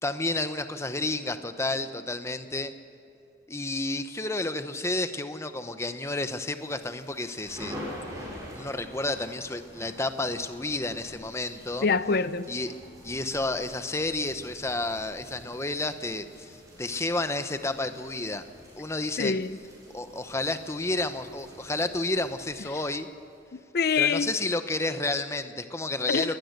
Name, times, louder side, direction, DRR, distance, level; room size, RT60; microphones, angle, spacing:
voice 1, 0.0-2.7 3.5-7.8 8.5-11.9 12.5-12.7 13.0-18.4 18.8-19.4 19.9-23.1 24.0-26.4, left 2 dB, 15° left, 0.9 m, -31 dB
sound 1, 6.4-23.4, equal, 20° right, 7.1 m, -47 dB
voice 2, 11.8-12.5 19.2-19.6 23.5-24.3 26.1-26.4, left 5 dB, 55° left, 0.6 m, -25 dB
23.0 x 18.5 x 6.7 m
head